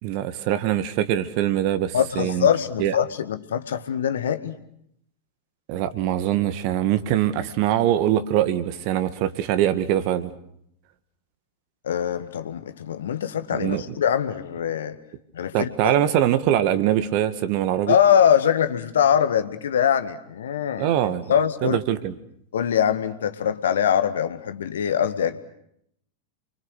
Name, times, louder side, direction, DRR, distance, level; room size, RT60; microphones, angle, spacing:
voice 1, 0.0-2.5 2.8-2.9 5.7-10.3 13.5-13.8 15.5-17.9 20.8-21.2 21.6-22.1, right 11 dB, 45° right, 1.9 m, -23 dB
voice 2, 1.9-4.6 11.8-15.0 15.3-15.7 17.9-20.9 21.3-21.8 22.5-25.4, left 8 dB, 65° left, 1.7 m, -22 dB
30.0 x 24.0 x 6.6 m
figure-of-eight pair, 90°, 0 cm